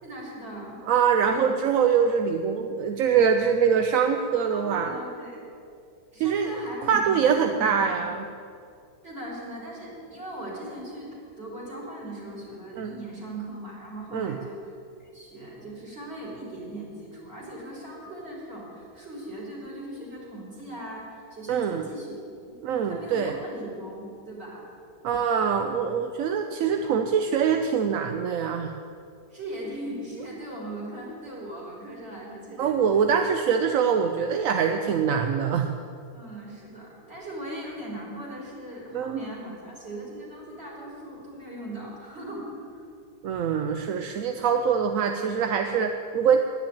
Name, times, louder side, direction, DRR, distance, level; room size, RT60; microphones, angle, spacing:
voice 1, 0.0-0.8 1.2-1.5 4.5-5.4 6.1-8.1 9.0-22.2 22.8-24.6 26.5-26.8 29.3-33.4 36.1-42.8 44.3-44.4, right 1 dB, 35° right, -5 dB, 4.4 m, -39 dB
voice 2, 0.8-4.9 6.2-6.5 6.9-8.3 12.8-12.9 14.1-14.4 21.5-21.9 22.6-23.4 25.0-28.7 32.6-35.7 38.9-39.2 43.2-46.4, right 7 dB, 65° right, 6 dB, 0.9 m, -24 dB
10.5 x 10.0 x 8.9 m, 2.4 s
omnidirectional pair, 1.8 m